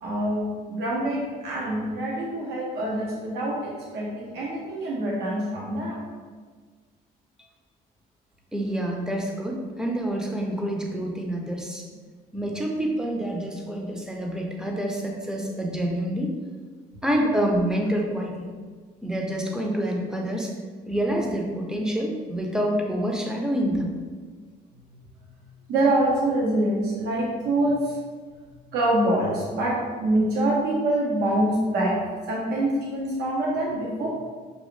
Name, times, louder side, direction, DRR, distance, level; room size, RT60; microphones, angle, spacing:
voice 1, 0.0-6.1 25.7-28.0 28.7-32.0 32.3-34.1, right 1 dB, 75° right, -4 dB, 1.0 m, -25 dB
voice 2, 8.5-11.9 12.3-16.3 17.0-18.5 19.0-20.5 20.9-23.9, equal, 5° right, 0 dB, 0.6 m, -27 dB
6.4 x 2.4 x 3.1 m, 1.5 s
cardioid pair, 110°, 17 cm